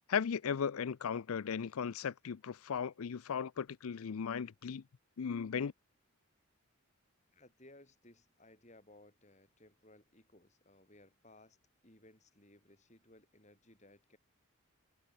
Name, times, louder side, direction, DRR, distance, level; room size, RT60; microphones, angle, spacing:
voice 1, 0.1-4.8 5.2-5.7, left 7 dB, 80° left, 0.5 m, -36 dB
voice 2, 7.3-11.6 11.8-14.2, left 1 dB, 30° left, 5.9 m, -61 dB
head